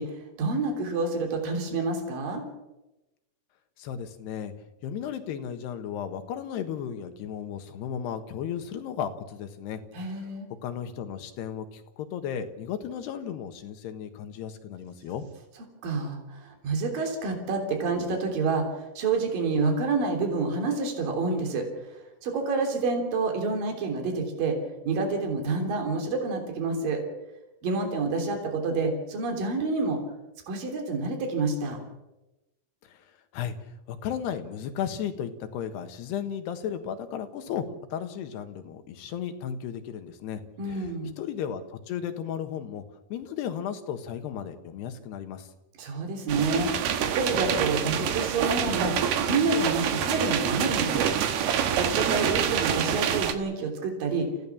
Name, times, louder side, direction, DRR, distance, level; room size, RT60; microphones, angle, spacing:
voice 1, 0.0-2.4 9.9-10.5 15.8-22.0 22.2-24.6 24.8-27.0 27.6-30.0 30.5-31.8 40.6-41.1 45.8-48.9 49.3-51.1 51.7-54.3, right 3 dB, 60° right, 3 dB, 4.9 m, -28 dB
voice 2, 3.8-4.5 4.8-9.8 10.1-10.2 10.6-15.3 32.9-33.1 33.3-33.6 33.9-37.7 37.9-40.4 40.7-40.9 41.2-42.8 43.1-45.5, left 8 dB, 90° left, 8 dB, 3.6 m, -34 dB
sound 1, 46.3-53.3, right 8 dB, 85° right, 3.4 m, -27 dB
29.0 x 16.0 x 7.2 m, 0.99 s
omnidirectional pair, 4.6 m